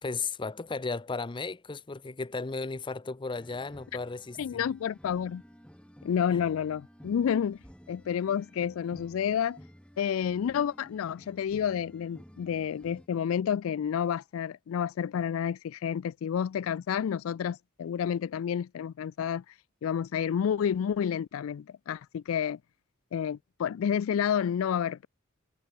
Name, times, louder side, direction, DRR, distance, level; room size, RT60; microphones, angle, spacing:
voice 1, 0.0-4.6, left 4 dB, 25° left, 0.6 m, -35 dB
sound 1, 3.3-13.1, equal, 5° left, 5.4 m, -53 dB
voice 2, 4.4-5.4 6.0-7.6 7.9-9.6 10.0-19.4 19.8-22.6 23.1-25.1, left 8 dB, 85° left, 0.3 m, -30 dB
head